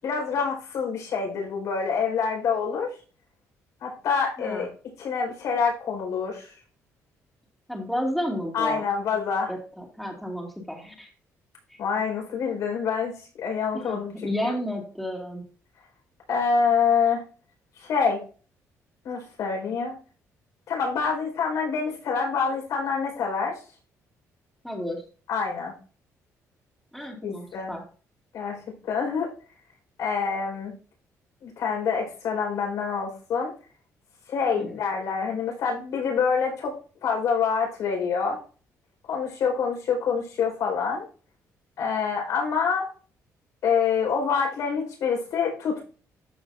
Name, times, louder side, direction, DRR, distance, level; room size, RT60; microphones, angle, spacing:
voice 1, 0.0-2.9 3.8-4.7 5.0-6.5 8.5-9.5 11.8-13.1 13.4-14.5 16.3-17.2 17.8-18.2 19.0-19.9 20.7-23.6 25.3-25.7 27.2-27.7 28.3-29.3 30.0-30.7 31.4-33.5 34.3-36.7 37.0-38.4 39.1-41.0 41.8-42.9 43.6-45.8, left 6 dB, 75° left, 0 dB, 4.9 m, -26 dB
voice 2, 4.4-4.7 7.7-8.9 9.5-11.1 13.7-15.4 24.6-25.0 26.9-27.8 34.6-34.7, equal, ahead, 0 dB, 2.5 m, -32 dB
13.5 x 5.5 x 2.7 m, 0.38 s
cardioid pair, 135°, 6 cm